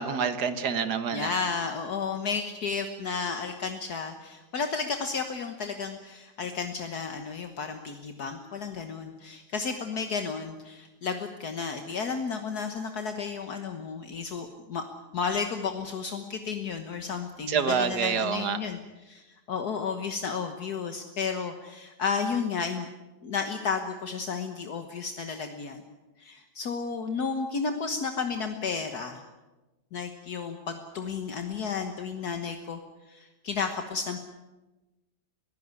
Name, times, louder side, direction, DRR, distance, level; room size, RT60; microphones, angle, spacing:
voice 1, 0.0-1.3 17.5-18.6, right 6 dB, 65° right, 11 dB, 1.9 m, -27 dB
voice 2, 1.1-14.8 15.1-22.9 23.2-25.8 26.2-29.2 29.9-32.8 33.1-34.2, left 5 dB, 65° left, 6 dB, 1.8 m, -32 dB
21.5 x 16.5 x 9.6 m, 1.1 s
omnidirectional pair, 1.8 m